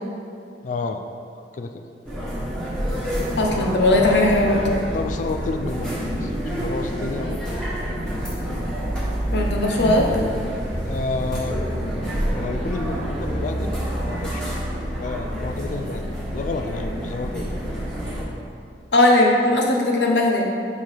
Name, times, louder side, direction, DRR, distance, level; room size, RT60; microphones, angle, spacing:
voice 1, 0.6-1.0 1.3-1.8 4.9-7.5 10.8-11.7 12.3-14.7 15.0-17.5, left 3 dB, 45° left, 6 dB, 0.3 m, -31 dB
sound 1, 2.0-18.2, equal, 5° left, 1.5 m, -27 dB
voice 2, 3.4-4.6 9.3-10.1 18.9-20.4, left 1 dB, 70° left, 0 dB, 0.9 m, -18 dB
5.4 x 4.7 x 4.6 m, 2.4 s
head